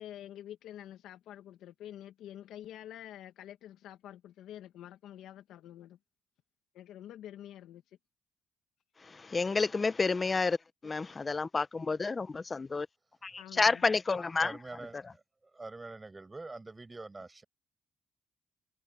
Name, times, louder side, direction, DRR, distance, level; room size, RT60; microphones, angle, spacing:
voice 1, 0.0-6.0 6.7-8.0 13.4-13.8, left 11 dB, 80° left, 2.2 m, -48 dB
voice 2, 9.0-10.6 10.8-12.9 13.2-14.6 14.9-15.1, left 4 dB, 30° left, 1.0 m, -30 dB
voice 3, 14.4-15.2 15.5-17.4, right 3 dB, 25° right, 7.1 m, -45 dB
supercardioid pair, 70°, 0 cm